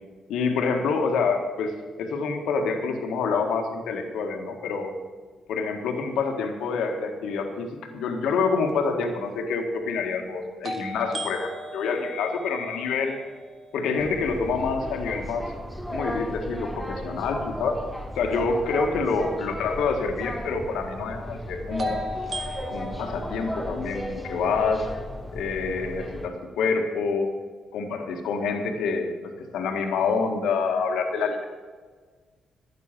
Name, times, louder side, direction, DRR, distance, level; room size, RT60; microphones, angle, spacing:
voice 1, 0.3-1.7 2.0-4.9 5.5-13.2 13.7-15.4 15.9-17.8 18.1-22.1 22.7-24.9 25.3-27.3 27.7-31.4, left 4 dB, 75° left, 4 dB, 1.7 m, -27 dB
sound 1, 8.7-8.8 10.6-14.5 21.8-25.8, equal, 45° right, 1.5 m, -38 dB
sound 2, 14.0-26.3, equal, ahead, 3.5 m, -35 dB
12.5 x 9.3 x 7.4 m, 1.4 s
hypercardioid pair, 50°, 0 cm